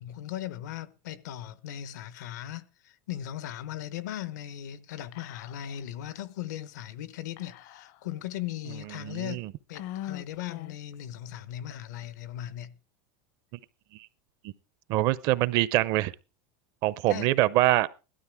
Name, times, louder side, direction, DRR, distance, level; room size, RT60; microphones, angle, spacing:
voice 1, 0.0-12.7 17.1-17.3, left 12 dB, 90° left, 1.0 m, -38 dB
Whispering, 5.1-5.8 6.1-6.2 7.4-8.2 8.8-8.9 9.7-10.9, left 13 dB, 50° left, 0.6 m, -41 dB
voice 2, 9.0-9.5 14.9-16.1 16.8-17.9, right 16 dB, 45° right, 0.6 m, -24 dB
16.5 x 12.5 x 3.5 m
supercardioid pair, 160°, 9 cm